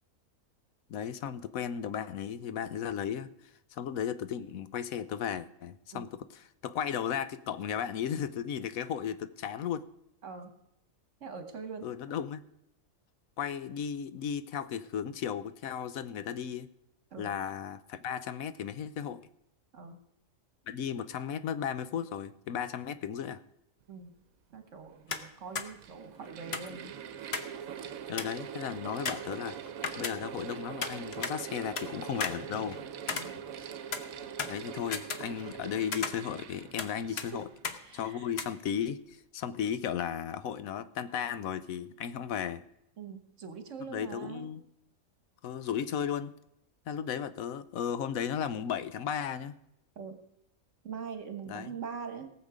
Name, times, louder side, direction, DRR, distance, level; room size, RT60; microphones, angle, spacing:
voice 1, 0.9-3.3 3.7-9.9 11.8-12.4 13.4-16.7 17.2-19.2 20.7-23.4 28.1-29.6 30.0-32.8 34.5-37.4 37.9-42.6 43.9-44.6 45.4-46.3 46.9-49.5 51.5-51.7, left 8 dB, 85° left, 13 dB, 1.2 m, -35 dB
voice 2, 11.2-11.9 17.1-17.3 19.7-20.0 23.9-24.2 24.5-26.9 27.7-27.8 33.1-33.4 37.1-37.4 37.8-38.3 43.0-44.5 49.9-50.2 50.8-52.3, right 5 dB, 60° right, 7 dB, 1.7 m, -43 dB
Mechanical fan, 24.5-24.6 25.4-38.1, right 8 dB, 85° right, 1.2 m, -43 dB
sound 1, 25.1-25.3 25.6-25.7 26.5-27.6 27.8-27.9 28.2-28.5 29.1-30.5 30.8-31.9 32.2-33.6 33.9-35.6 35.9-36.9 37.2-37.3 37.6-37.8 38.4-38.5, left 5 dB, 50° left, 1.1 m, -36 dB
18.0 x 7.4 x 5.0 m, 0.80 s
omnidirectional pair, 1.4 m